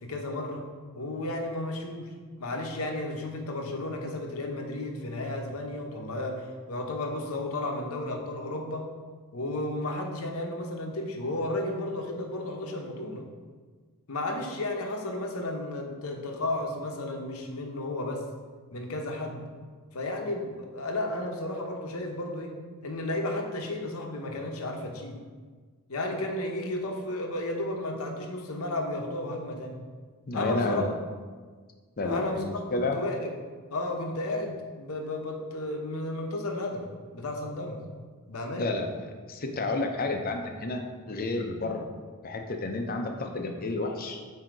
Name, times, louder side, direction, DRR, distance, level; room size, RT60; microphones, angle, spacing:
voice 1, 0.0-0.6 0.9-2.1 2.4-8.9 9.3-13.2 14.1-18.2 18.7-19.4 19.9-22.5 22.8-25.2 25.9-29.8 30.3-30.8 32.0-33.3 33.7-36.8 37.1-37.8 38.3-38.7, left 1 dB, 80° left, 3 dB, 0.8 m, -33 dB
voice 2, 30.3-30.9 32.0-33.0 38.6-38.9 39.3-41.9 42.2-44.2, left 2 dB, 40° left, 4 dB, 0.6 m, -31 dB
7.7 x 2.8 x 4.6 m, 1.5 s
head